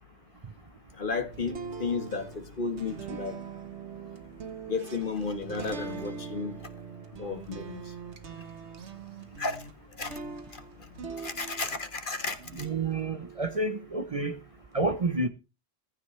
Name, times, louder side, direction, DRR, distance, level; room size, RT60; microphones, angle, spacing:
voice 1, 1.0-1.5 1.8-3.4 4.7-6.5 7.2-7.8 9.4-9.6 10.0-10.1 11.2-12.4, left 4 dB, 50° left, 1.7 m, -32 dB
sound 1, 1.3-11.9 12.4-14.7, right 5 dB, 85° right, 1.6 m, -42 dB
voice 2, 12.6-14.4 14.7-15.3, right 2 dB, 35° right, 0.8 m, -29 dB
15.0 x 15.0 x 3.3 m
omnidirectional pair, 1.1 m